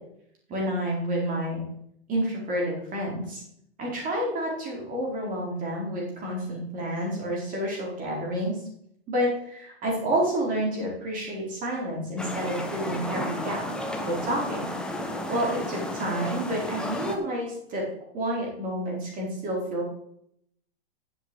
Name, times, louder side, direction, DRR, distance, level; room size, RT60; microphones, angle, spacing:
voice 1, 0.5-1.6 2.1-3.4 3.8-8.6 9.1-13.6 14.0-14.7 15.3-17.9 18.1-19.9, right 1 dB, 25° right, -2 dB, 4.8 m, -29 dB
sound 1, 12.2-17.2, left 1 dB, 5° left, 1.2 m, -32 dB
8.4 x 7.1 x 8.0 m, 0.72 s
hypercardioid pair, 135°, 32 cm